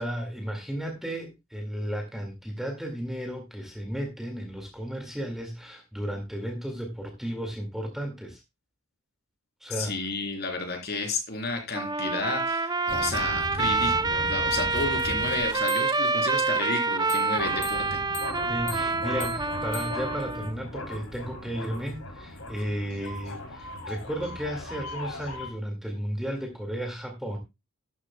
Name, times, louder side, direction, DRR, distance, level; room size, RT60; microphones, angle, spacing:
voice 1, 0.0-8.4 9.6-9.9 18.5-27.4, equal, ahead, 2 dB, 1.9 m, -34 dB
voice 2, 9.8-18.0, left 3 dB, 45° left, 3 dB, 3.6 m, -32 dB
Trumpet, 11.7-20.6, right 3 dB, 20° right, 0.4 m, -27 dB
sound 1, 12.9-16.2 17.1-25.5, left 1 dB, 70° left, 2.6 m, -38 dB
12.0 x 11.5 x 2.2 m, 0.23 s
head